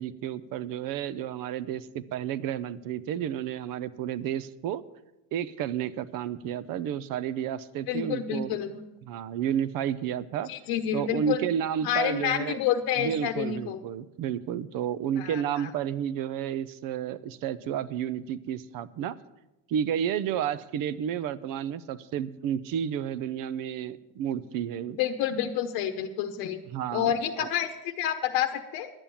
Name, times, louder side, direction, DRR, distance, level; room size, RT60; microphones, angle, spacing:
voice 1, 0.0-4.8 5.3-8.6 9.1-10.5 10.9-12.6 13.0-19.2 19.7-25.0 26.7-27.5, right 9 dB, 60° right, 17 dB, 0.7 m, -31 dB
voice 2, 7.9-8.8 10.5-11.4 11.8-13.8 15.2-15.7 24.9-26.6 26.9-28.9, left 10 dB, 70° left, 6 dB, 0.9 m, -29 dB
11.0 x 8.7 x 7.1 m, 0.98 s
cardioid pair, 145°, 37 cm